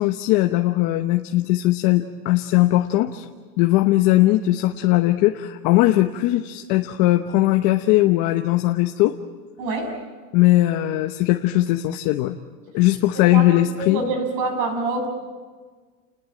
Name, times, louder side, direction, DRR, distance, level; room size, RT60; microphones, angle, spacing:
voice 1, 0.0-3.3 3.6-9.1 10.3-12.4 12.7-14.0, left 16 dB, 40° left, 5 dB, 1.0 m, -19 dB
voice 2, 9.6-9.9 13.1-13.4 13.8-15.1, right 3 dB, 40° right, 5 dB, 6.4 m, -26 dB
30.0 x 20.0 x 8.7 m, 1.5 s
supercardioid pair, 160°, 48 cm